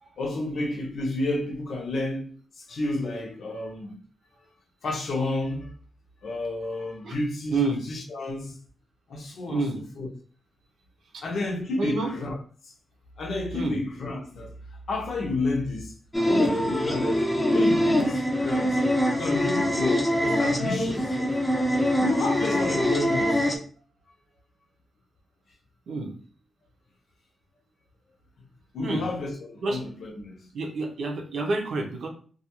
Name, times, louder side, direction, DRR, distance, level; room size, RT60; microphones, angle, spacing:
voice 1, 0.2-4.0 4.8-5.7 6.2-8.6 9.1-10.1 11.2-12.4 12.6-12.7 13.2-14.5 14.9-15.9 16.3-21.4 22.0-23.4 28.7-30.5, left 2 dB, 70° left, 0.7 m, -31 dB
voice 2, 9.5-9.8 11.1-11.2 11.8-12.1 13.5-13.8 25.9-26.1 28.8-29.0 29.6-29.8 30.5-32.1, right 3 dB, 80° right, 0.6 m, -28 dB
sound 1, 16.1-23.6, left 1 dB, 10° left, 0.6 m, -24 dB
2.4 x 2.3 x 2.9 m
cardioid pair, 105°, 0 cm